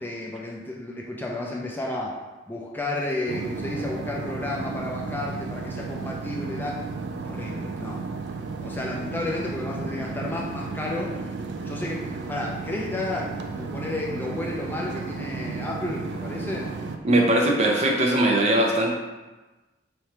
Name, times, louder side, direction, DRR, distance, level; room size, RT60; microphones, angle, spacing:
voice 1, 0.0-2.1 2.5-6.8 7.2-8.0 8.6-11.1 11.6-12.0 12.3-16.7, left 2 dB, 10° left, -2 dB, 0.4 m, -32 dB
sound 1, 3.3-17.0, right 4 dB, 80° right, 0.4 m, -33 dB
voice 2, 17.0-18.9, right 1 dB, 40° right, 0 dB, 0.6 m, -20 dB
4.4 x 3.2 x 2.8 m, 1.2 s
head